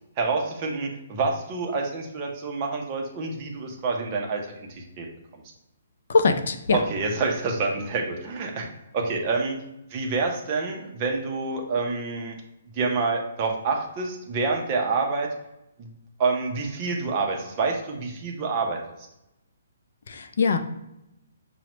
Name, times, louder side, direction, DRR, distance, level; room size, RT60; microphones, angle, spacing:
voice 1, 0.2-5.1 5.3-5.4 6.7-8.7 8.9-9.6 9.9-12.4 12.7-15.3 15.8-15.9 16.2-18.8, right 4 dB, 20° right, 1 dB, 0.5 m, -27 dB
voice 2, 6.1-6.8 20.1-20.6, left 4 dB, 50° left, 8 dB, 0.3 m, -22 dB
5.9 x 2.0 x 2.9 m, 0.87 s
hypercardioid pair, 180°, 0 cm